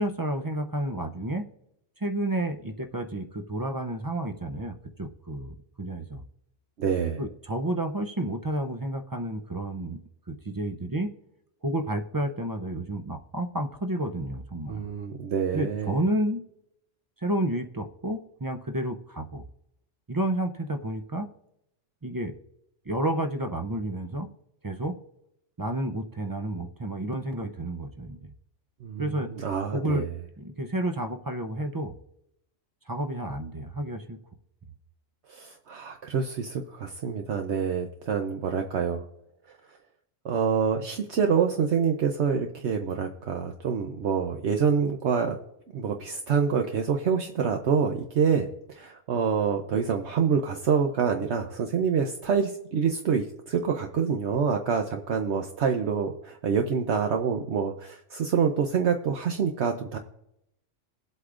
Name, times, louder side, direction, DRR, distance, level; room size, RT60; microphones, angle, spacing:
voice 1, 0.0-1.5 2.0-6.2 7.2-10.0 10.3-11.1 11.6-14.9 15.5-16.4 17.2-19.5 20.1-21.3 22.0-22.3 22.9-24.3 24.6-25.0 25.6-28.3 29.0-29.3 29.7-30.1 30.4-31.9 32.9-34.2, right 1 dB, 35° right, 5 dB, 0.3 m, -30 dB
voice 2, 6.8-7.2 14.7-15.9 28.8-29.1 29.4-30.1 35.3-39.0 40.2-45.4 45.7-60.0, right 6 dB, 65° right, 4 dB, 1.0 m, -26 dB
22.0 x 8.1 x 2.5 m, 0.80 s
omnidirectional pair, 1.3 m